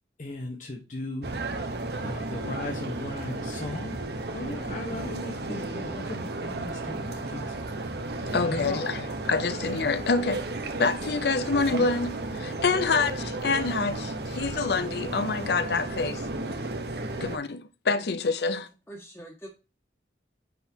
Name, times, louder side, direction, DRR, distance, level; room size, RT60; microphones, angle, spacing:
voice 1, 0.2-1.3 2.0-4.0 4.3-7.5 8.2-9.0, left 2 dB, 45° left, 1.2 m, -37 dB
sound 1, 1.2-17.4, right 2 dB, 60° right, 1.0 m, -34 dB
voice 2, 8.3-10.5 10.8-16.3 17.2-18.7, left 4 dB, 60° left, 0.6 m, -27 dB
voice 3, 18.9-19.5, right 1 dB, 10° left, 1.7 m, -44 dB
9.3 x 4.1 x 2.8 m
head